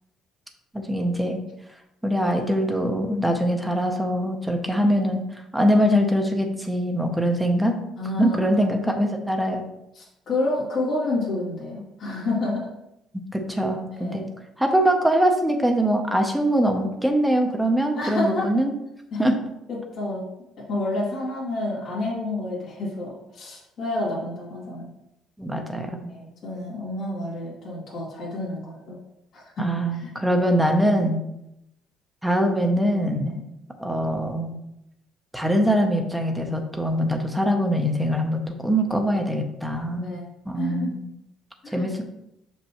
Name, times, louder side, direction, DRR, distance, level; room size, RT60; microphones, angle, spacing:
voice 1, 0.7-1.4 2.0-7.8 8.2-9.6 13.3-14.2 14.6-18.7 19.2-19.3 25.4-26.1 29.6-31.2 32.2-33.4 33.8-34.5 35.3-40.1 40.5-41.1 41.7-42.0, equal, ahead, 3 dB, 0.6 m, -23 dB
voice 2, 8.0-8.8 9.9-12.7 13.9-14.3 18.0-18.5 19.1-19.2 19.7-20.2 20.7-24.9 26.1-29.0 29.3-29.7 29.9-30.4 39.9-40.3 40.5-40.9 41.6-41.9, left 2 dB, 40° left, -7 dB, 2.4 m, -29 dB
6.0 x 5.3 x 2.9 m, 0.84 s
cardioid pair, 175°, 0 cm